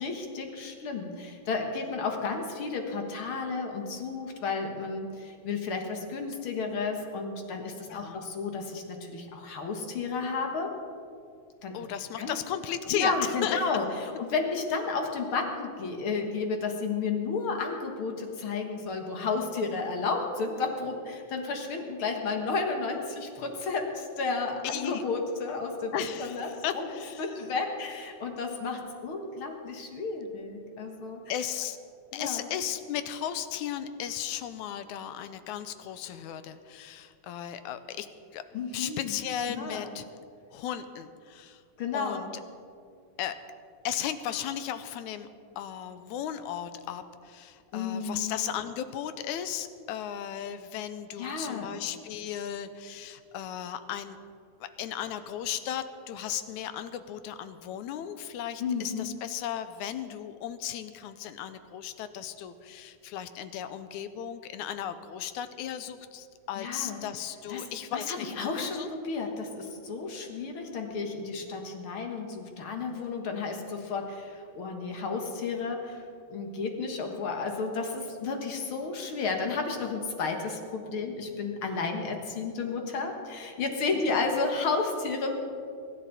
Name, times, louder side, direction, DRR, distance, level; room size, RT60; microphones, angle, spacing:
voice 1, 0.0-10.7 11.6-11.7 12.2-12.3 12.9-13.8 14.2-26.9 27.2-31.2 32.1-32.4 38.5-39.1 39.5-39.9 41.8-42.3 47.7-48.4 51.2-51.8 58.6-59.1 66.6-67.0 67.5-67.7 67.9-76.0 76.3-85.3, left 4 dB, 50° left, 3 dB, 1.9 m, -32 dB
voice 2, 7.9-8.2 11.7-13.6 24.6-25.0 25.9-27.3 31.3-31.8 32.1-38.1 38.3-38.4 38.7-40.1 40.5-41.6 41.9-42.3 43.2-43.4 43.8-45.3 45.6-54.2 54.6-68.9 84.1-84.2, left 10 dB, 80° left, 11 dB, 2.0 m, -35 dB
23.0 x 12.0 x 4.1 m, 2.4 s
omnidirectional pair, 3.6 m